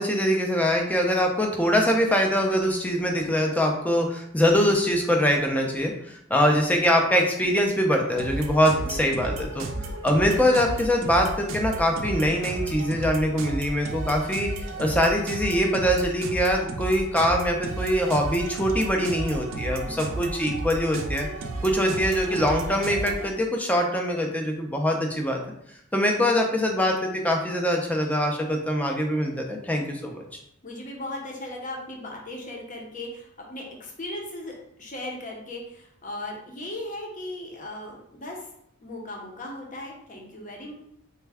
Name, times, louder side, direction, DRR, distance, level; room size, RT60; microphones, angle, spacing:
voice 1, 0.0-9.7 10.0-21.3 21.6-25.4 25.9-30.2, equal, 5° left, 1 dB, 0.4 m, -23 dB
sound 1, 8.2-23.3, right 2 dB, 70° right, 0.4 m, -33 dB
voice 2, 8.8-9.4 9.7-10.1 19.8-20.2 30.6-38.5 38.8-40.7, left 1 dB, 40° left, 0 dB, 0.7 m, -38 dB
3.3 x 2.2 x 3.4 m, 0.73 s
head